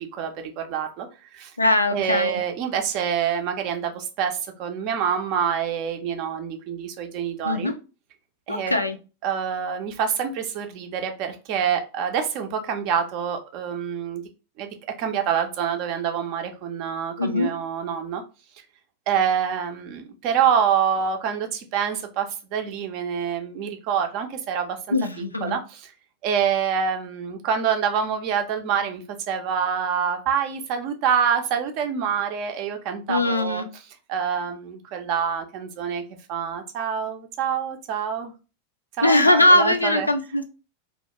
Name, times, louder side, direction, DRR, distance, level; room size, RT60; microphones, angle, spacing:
voice 1, 0.1-1.1 1.3-1.5 1.9-7.7 8.5-8.7 9.2-14.2 14.6-18.2 19.1-25.0 25.4-25.9 26.2-33.6 34.1-36.0 36.3-38.3 39.0-40.1, right 7 dB, 40° right, 6 dB, 0.5 m, -26 dB
voice 2, 1.6-2.3 7.4-7.8 8.5-9.0 17.2-17.5 24.9-25.6 33.1-33.7 39.0-40.4, left 1 dB, 85° left, 7 dB, 0.3 m, -20 dB
2.3 x 2.2 x 2.7 m, 0.32 s
figure-of-eight pair, 90°, 0 cm